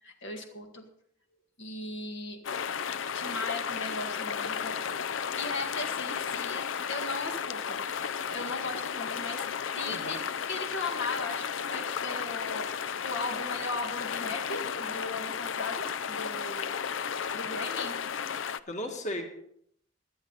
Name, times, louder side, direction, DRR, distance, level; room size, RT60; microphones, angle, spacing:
voice 1, 0.0-0.8 1.6-2.4 3.1-7.8 8.2-12.7 13.0-16.8 17.3-18.0, left 3 dB, 70° left, 3 dB, 1.9 m, -38 dB
sound 1, 2.4-18.6, left 7 dB, 85° left, 0.5 m, -33 dB
voice 2, 9.8-10.2 18.7-19.2, left 1 dB, 40° left, 3 dB, 2.0 m, -35 dB
18.0 x 11.0 x 4.0 m, 0.70 s
head